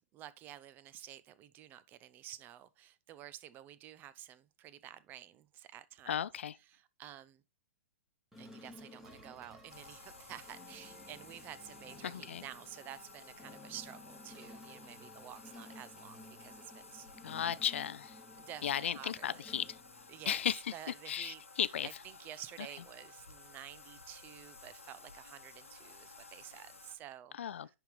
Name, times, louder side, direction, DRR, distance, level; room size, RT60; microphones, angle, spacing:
voice 1, 0.0-6.2 6.6-7.4 8.4-17.1 18.4-19.5 20.1-27.8, right 12 dB, 25° right, 0.5 m, -51 dB
voice 2, 6.1-6.5 12.0-12.4 17.2-18.2 18.6-19.8 20.3-20.6 21.1-21.9 27.4-27.8, left 9 dB, 65° left, 0.4 m, -35 dB
sound 1, 8.3-20.6, left 1 dB, 5° right, 1.5 m, -56 dB
Bathtub (filling or washing), 9.7-27.0, left 4 dB, 90° left, 1.0 m, -55 dB
10.0 x 3.6 x 3.1 m
figure-of-eight pair, 115°, 7 cm